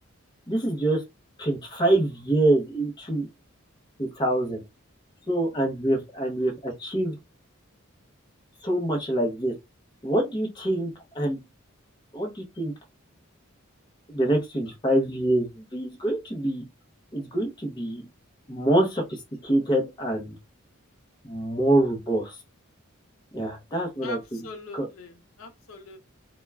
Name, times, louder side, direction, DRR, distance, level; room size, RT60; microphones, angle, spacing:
voice 1, 0.5-1.0 1.4-3.3 4.0-4.6 5.3-7.1 8.6-9.5 10.0-11.4 12.1-12.7 14.1-16.6 17.1-18.0 18.5-20.4 21.2-22.4 23.3-24.2 24.7-24.9, right 1 dB, 20° left, 0.6 m, -25 dB
voice 2, 24.0-26.0, left 2 dB, 85° left, 0.7 m, -41 dB
2.3 x 2.1 x 3.2 m
head